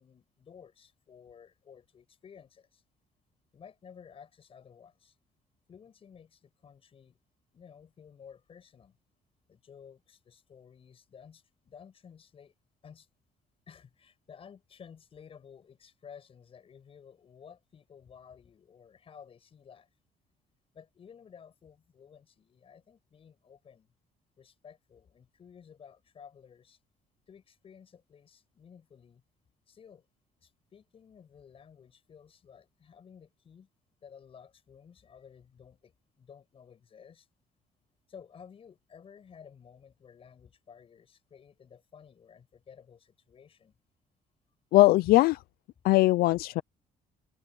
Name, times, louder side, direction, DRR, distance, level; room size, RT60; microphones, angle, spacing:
voice 1, 0.0-2.8 3.5-5.2 5.7-7.2 7.5-9.0 9.5-12.5 12.8-13.1 13.7-19.9 20.7-23.9 24.4-26.8 27.3-29.2 29.7-30.1 30.4-33.7 34.0-37.3 38.1-43.7, left 7 dB, 40° left, 7.1 m, -54 dB
voice 2, 44.7-45.4 45.8-46.6, left 18 dB, 85° left, 0.5 m, -21 dB
open air
cardioid pair, 145°, 15 cm